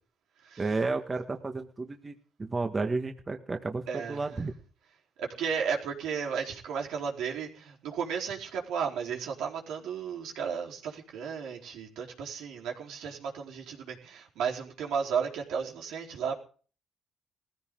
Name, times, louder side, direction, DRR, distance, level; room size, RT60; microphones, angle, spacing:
voice 1, 0.6-2.1 2.4-4.5, right 3 dB, 30° right, 1.7 m, -32 dB
voice 2, 3.9-4.2 5.2-16.4, right 6 dB, 85° right, 4.2 m, -34 dB
19.5 x 15.0 x 3.9 m
cardioid pair, 90°, 0 cm